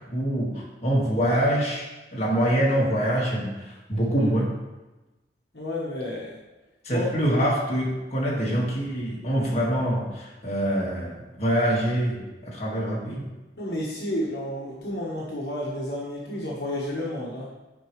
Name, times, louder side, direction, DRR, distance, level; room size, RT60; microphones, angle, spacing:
voice 1, 0.1-1.8 2.1-4.5 6.8-13.2, equal, 35° left, -5 dB, 1.9 m, -25 dB
voice 2, 5.5-6.3 6.9-7.1 13.6-17.5, left 1 dB, 65° left, -5 dB, 1.2 m, -31 dB
10.5 x 4.8 x 3.2 m, 1.1 s
head